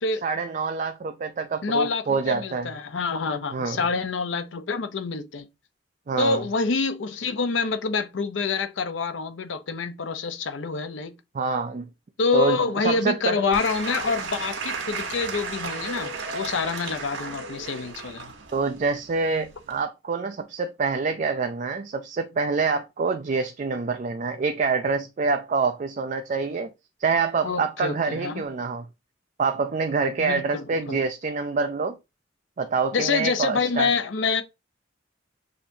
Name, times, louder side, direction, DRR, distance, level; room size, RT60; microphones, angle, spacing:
voice 1, 0.2-2.7 3.5-3.8 6.1-6.4 11.3-11.9 12.3-13.4 18.5-26.7 27.0-28.9 29.4-32.0 32.6-33.9, right 4 dB, 40° right, 0.4 m, -26 dB
voice 2, 1.6-5.5 6.2-11.2 12.2-18.3 27.4-28.4 30.2-31.0 32.9-34.4, left 4 dB, 90° left, 0.6 m, -27 dB
Applause / Crowd, 13.5-19.8, right 4 dB, 85° right, 1.1 m, -34 dB
6.4 x 2.8 x 2.6 m
head